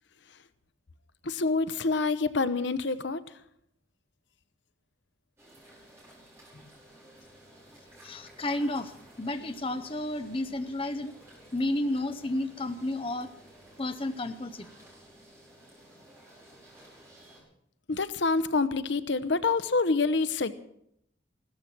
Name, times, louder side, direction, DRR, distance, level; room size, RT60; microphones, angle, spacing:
voice 1, 1.2-3.2 17.9-20.5, left 3 dB, 70° left, 14 dB, 0.8 m, -27 dB
sound 1, 5.4-17.4, right 1 dB, 15° right, 5.5 m, -54 dB
voice 2, 8.0-11.1 11.5-13.3 13.8-14.7, left 1 dB, 30° left, 9 dB, 0.7 m, -32 dB
16.0 x 13.5 x 6.1 m, 0.72 s
head